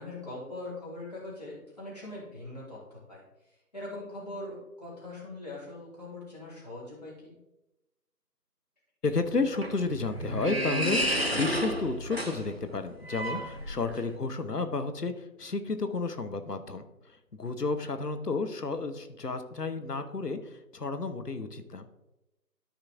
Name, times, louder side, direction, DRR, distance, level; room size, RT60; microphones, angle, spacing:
voice 1, 0.0-3.2 3.7-7.4 13.9-14.0, left 2 dB, 25° left, -7 dB, 2.6 m, -41 dB
voice 2, 9.0-21.9, left 3 dB, 70° left, 9 dB, 1.2 m, -32 dB
sound 1, 9.3-14.1, equal, 40° right, 0.8 m, -32 dB
13.0 x 4.9 x 3.6 m, 0.94 s
figure-of-eight pair, 170°, 49 cm